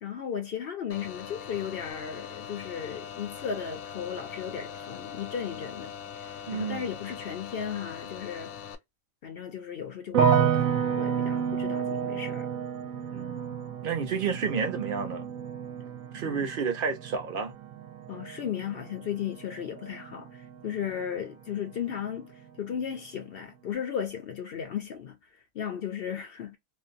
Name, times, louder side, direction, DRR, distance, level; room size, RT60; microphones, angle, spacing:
voice 1, 0.0-8.5 9.2-12.5 16.2-16.5 18.1-26.6, left 8 dB, 60° left, 0.7 m, -36 dB
sound 1, 0.9-8.7, left 8 dB, 85° left, 1.0 m, -41 dB
voice 2, 6.5-6.9 13.1-15.3 16.1-17.5, right 6 dB, 50° right, 0.7 m, -31 dB
sound 2, 10.1-21.2 21.5-22.2, right 7 dB, 75° right, 0.9 m, -30 dB
2.5 x 2.0 x 2.5 m
omnidirectional pair, 1.5 m